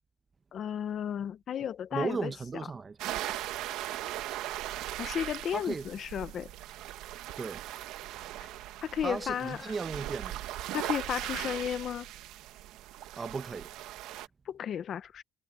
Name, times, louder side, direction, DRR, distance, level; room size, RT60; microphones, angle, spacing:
voice 1, 0.5-2.3 5.0-6.5 8.4-8.5 8.8-9.7 10.7-12.1 14.5-15.2, left 9 dB, 45° left, 0.7 m, -34 dB
voice 2, 1.9-3.0 5.5-5.8 7.4-7.6 9.0-10.4 13.2-13.7, right 4 dB, 25° right, 1.0 m, -35 dB
sound 1, 3.0-14.3, right 14 dB, 85° right, 1.3 m, -39 dB
cardioid pair, 150°, 0 cm